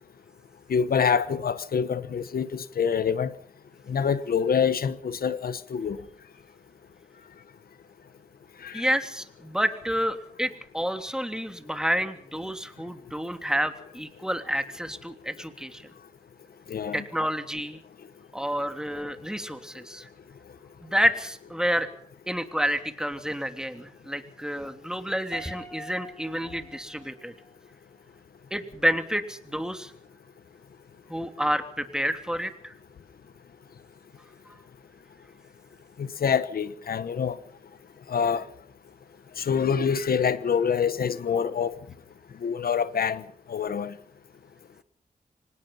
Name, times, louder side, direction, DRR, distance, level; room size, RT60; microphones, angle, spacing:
voice 1, 0.7-3.3 3.9-6.0 8.6-8.9 16.7-17.0 36.0-37.4 38.1-38.4 39.4-41.7 42.4-43.2 43.5-43.9, left 7 dB, 90° left, 1.1 m, -26 dB
voice 2, 8.7-15.8 16.9-17.8 18.3-20.1 20.8-21.9 22.3-27.3 28.5-29.9 31.1-32.7, equal, 5° right, 3.2 m, -29 dB
Piano, 25.3-27.6, equal, 15° left, 4.4 m, -45 dB
25.5 x 19.5 x 5.7 m
cardioid pair, 55°, 15 cm